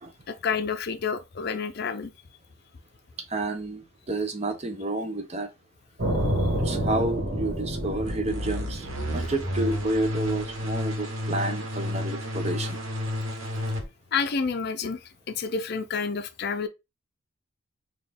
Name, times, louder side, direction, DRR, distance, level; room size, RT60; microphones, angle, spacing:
voice 1, 0.3-2.1 14.1-15.0 15.3-16.7, left 5 dB, 50° left, 0.5 m, -29 dB
voice 2, 3.2-5.5 6.6-12.8, right 2 dB, 30° right, 0.7 m, -30 dB
sound 1, 6.0-10.8, equal, 55° right, 1.6 m, -29 dB
sound 2, 8.0-13.8, left 1 dB, 75° right, 1.2 m, -31 dB
4.1 x 2.4 x 3.4 m
head